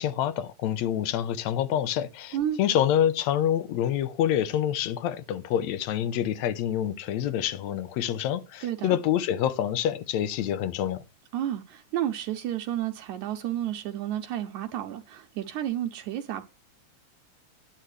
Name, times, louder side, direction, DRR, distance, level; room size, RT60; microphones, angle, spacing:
voice 1, 0.0-11.1, left 10 dB, 70° left, 1.9 m, -27 dB
voice 2, 8.6-9.0 11.3-16.4, right 11 dB, 75° right, 2.0 m, -31 dB
12.5 x 9.9 x 3.2 m
omnidirectional pair, 3.6 m